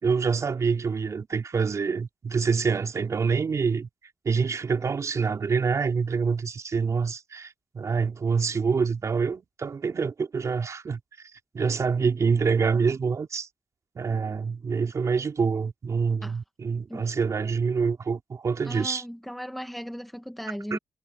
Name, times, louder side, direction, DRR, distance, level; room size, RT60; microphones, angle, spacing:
voice 1, 0.0-3.9 4.2-11.0 11.5-13.5 13.9-19.0 20.7-20.8, right 5 dB, 55° right, 3.3 m, -26 dB
voice 2, 18.6-20.8, equal, ahead, 2.3 m, -37 dB
supercardioid pair, 55°, 6 cm